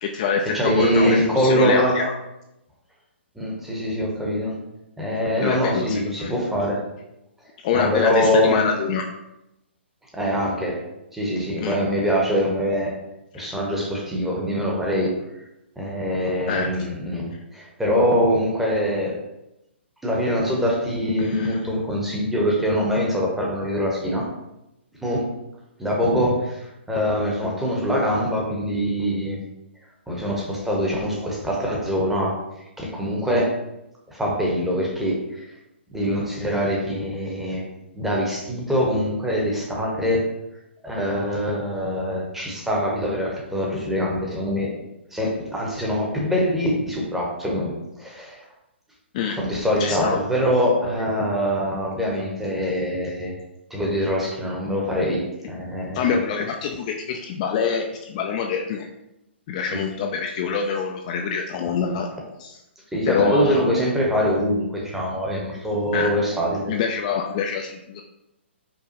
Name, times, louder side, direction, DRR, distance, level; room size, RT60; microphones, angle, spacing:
voice 1, 0.0-2.1 5.4-6.3 7.6-9.1 11.6-11.7 13.3-13.5 16.5-16.7 21.2-21.6 49.1-49.4 49.8-50.2 55.9-58.9 59.5-62.1 62.4-62.6 63.1-63.6 65.9-66.1 66.7-68.0, left 6 dB, 35° left, 2 dB, 0.3 m, -26 dB
voice 2, 0.5-1.9 3.3-4.5 5.0-6.8 7.7-8.7 10.1-10.8 11.1-12.9 13.3-15.2 15.8-19.2 20.0-24.3 25.0-25.3 25.8-29.4 30.1-32.4 32.8-33.5 34.1-35.4 35.9-37.6 38.0-40.3 40.8-44.7 45.1-48.4 49.4-53.3 53.7-56.2 59.7-59.8 62.9-66.7, equal, 5° right, -3 dB, 0.8 m, -23 dB
4.9 x 2.2 x 2.9 m, 0.89 s
hypercardioid pair, 135°, 7 cm